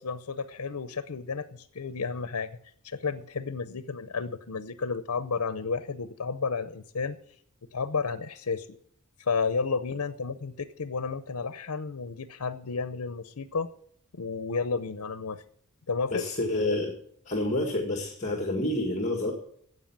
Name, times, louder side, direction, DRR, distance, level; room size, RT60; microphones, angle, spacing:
voice 1, 0.0-2.6 2.8-7.2 7.7-8.7 9.2-13.7 14.1-15.4 15.9-16.2, left 4 dB, 90° left, 12 dB, 0.7 m, -32 dB
voice 2, 16.1-16.9 17.2-19.3, left 1 dB, 30° left, 2 dB, 1.8 m, -28 dB
12.5 x 8.2 x 7.3 m, 0.67 s
head